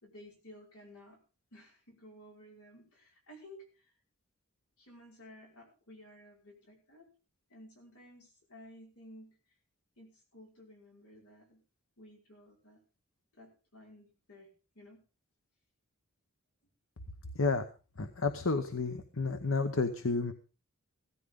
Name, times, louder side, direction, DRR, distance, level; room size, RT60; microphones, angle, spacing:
voice 1, 0.0-1.2 1.5-3.7 4.8-7.1 7.5-9.4 10.0-11.6 12.0-12.8 13.3-14.5 14.8-15.0, equal, 85° left, 0 dB, 5.4 m, -55 dB
voice 2, 18.0-20.3, left 3 dB, 65° left, 9 dB, 1.1 m, -31 dB
16.5 x 14.0 x 3.8 m, 0.34 s
head